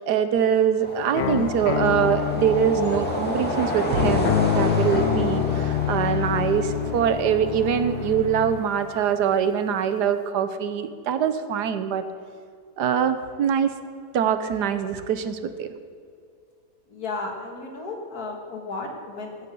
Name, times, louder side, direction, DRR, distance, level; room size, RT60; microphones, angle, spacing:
voice 1, 0.0-12.0 12.8-13.7 14.1-15.7, right 8 dB, 80° right, 10 dB, 1.3 m, -23 dB
sound 1, 0.8-9.3, equal, 5° left, 2.2 m, -31 dB
sound 2, 1.2-8.6, left 10 dB, 80° left, 0.5 m, -27 dB
voice 2, 16.9-19.5, left 3 dB, 65° left, 1 dB, 2.2 m, -34 dB
16.0 x 6.1 x 6.3 m, 2.2 s
omnidirectional pair, 1.7 m